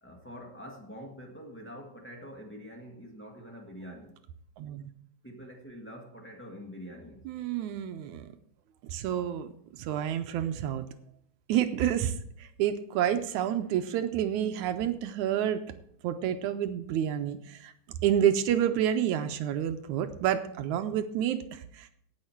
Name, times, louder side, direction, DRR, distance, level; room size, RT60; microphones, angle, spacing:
voice 1, 0.0-4.1 5.2-7.3, equal, 20° left, 0.3 m, -45 dB
voice 2, 4.6-4.9 7.3-8.3 8.8-10.8 11.5-15.6 16.0-17.7 18.0-21.9, right 10 dB, 75° right, 2.0 m, -29 dB
17.5 x 6.5 x 4.5 m
omnidirectional pair, 3.5 m